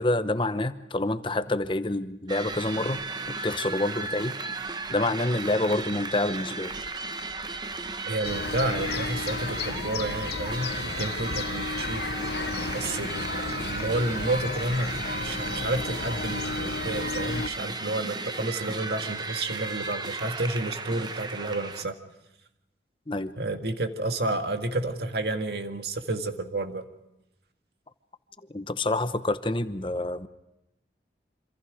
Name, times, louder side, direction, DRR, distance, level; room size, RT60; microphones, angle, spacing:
voice 1, 0.0-3.0 3.3-4.3 4.9-6.7 23.1-23.3 28.5-30.3, left 2 dB, 30° left, 12 dB, 0.9 m, -27 dB
sound 1, 2.3-21.8, right 3 dB, 25° right, 0.9 m, -35 dB
voice 2, 8.0-12.1 12.7-22.0 23.4-26.9, right 2 dB, 65° right, 6 dB, 1.8 m, -30 dB
sound 2, 8.2-17.5, left 4 dB, 65° left, 0.8 m, -33 dB
26.5 x 26.5 x 5.0 m, 0.90 s
head